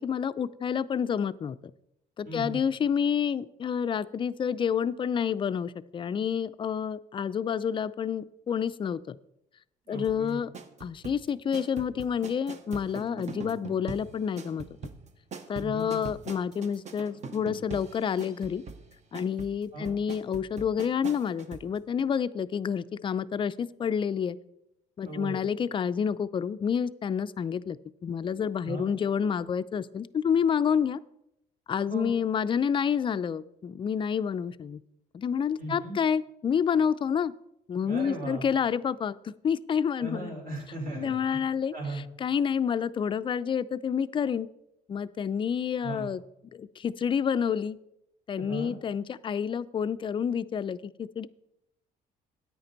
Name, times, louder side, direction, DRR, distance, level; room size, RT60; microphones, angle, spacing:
voice 1, 0.0-1.6 2.2-9.2 9.9-10.5 10.8-14.7 15.5-18.6 19.1-24.4 25.0-27.8 28.0-31.0 31.7-34.8 35.1-37.3 37.7-40.4 41.0-41.7 42.2-44.5 44.9-46.2 46.5-47.8 48.3-51.3, left 7 dB, 30° left, 15 dB, 0.4 m, -29 dB
voice 2, 2.2-2.6 9.8-10.4 15.5-16.0 19.7-19.9 25.0-25.4 28.6-28.9 31.8-32.1 35.6-35.9 37.8-38.4 40.0-41.4 41.7-42.0 45.8-46.1 48.4-48.7, right 2 dB, 60° right, -1 dB, 4.6 m, -37 dB
sound 1, 10.0-21.7 22.0-22.1, right 5 dB, 45° right, 1.0 m, -42 dB
9.7 x 9.2 x 4.0 m, 0.81 s
cardioid pair, 110°, 17 cm